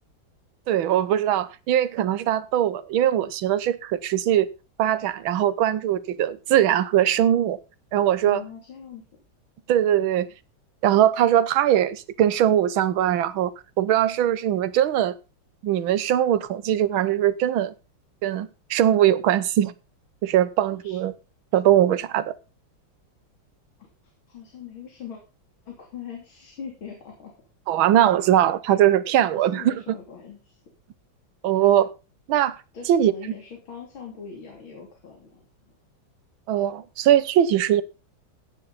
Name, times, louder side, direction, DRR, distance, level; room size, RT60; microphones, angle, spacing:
voice 1, 0.7-4.5 4.8-7.6 7.9-8.4 9.7-10.3 10.8-13.5 13.8-15.1 15.6-17.7 18.2-19.7 20.2-21.1 21.5-22.3 27.7-29.7 31.4-31.9 32.3-32.5 32.9-33.1 36.5-37.8, right 11 dB, 85° right, 1.7 m, -21 dB
voice 2, 8.2-9.0 20.7-21.0 24.0-25.2 25.7-27.3 29.3-30.6 32.7-35.4, left 7 dB, 90° left, 3.8 m, -41 dB
15.5 x 9.9 x 4.1 m
omnidirectional pair, 2.2 m